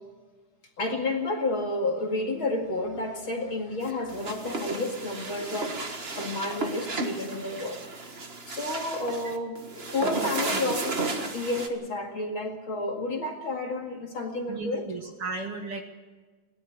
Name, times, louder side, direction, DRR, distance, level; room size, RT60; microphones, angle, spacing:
voice 1, 0.8-7.8 8.5-9.6 9.9-11.0 11.3-14.8, left 2 dB, 45° left, 2 dB, 2.7 m, -31 dB
sound 1, 3.8-11.7, right 3 dB, 35° right, 0.9 m, -33 dB
voice 2, 10.0-10.6 14.5-15.8, right 4 dB, 55° right, 4 dB, 2.0 m, -35 dB
22.0 x 17.5 x 6.9 m, 1.4 s
omnidirectional pair, 3.6 m